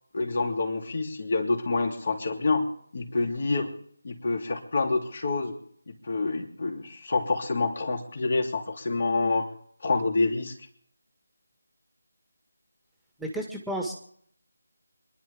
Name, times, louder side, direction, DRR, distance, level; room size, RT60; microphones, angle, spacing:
voice 1, 0.1-2.6 2.9-3.7 4.0-5.6 6.0-9.5 9.8-10.5, left 3 dB, 50° left, 3 dB, 3.3 m, -27 dB
voice 2, 13.2-13.9, right 1 dB, ahead, 1 dB, 1.8 m, -32 dB
27.5 x 11.5 x 3.6 m, 0.63 s
figure-of-eight pair, 165°, 0 cm